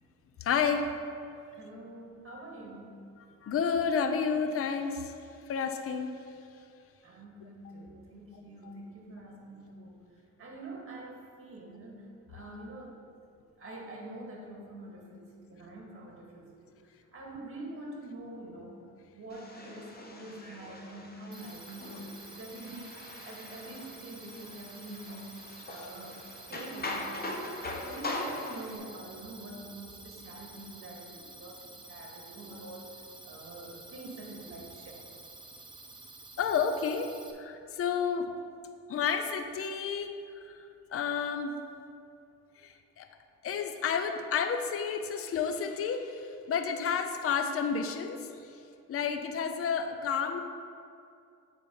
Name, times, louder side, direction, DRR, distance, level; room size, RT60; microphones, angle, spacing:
voice 1, 0.4-0.9 3.2-5.1 5.5-6.1 25.7-25.9 36.4-38.3 38.9-40.1 40.4-41.6 42.6-43.1 43.4-48.6 48.9-50.4, left 6 dB, 50° left, 6 dB, 0.6 m, -31 dB
voice 2, 1.6-3.0 7.0-10.0 10.4-13.0 13.6-16.8 17.1-18.8 19.1-27.5 27.7-32.9 33.2-35.1, right 2 dB, 45° right, -1 dB, 1.9 m, -45 dB
sound 1, 19.3-28.8, left 2 dB, 30° left, 1.0 m, -41 dB
sound 2, 21.3-37.3, right 2 dB, 15° right, 0.9 m, -50 dB
8.6 x 4.1 x 5.2 m, 2.5 s
cardioid pair, 100°, 31 cm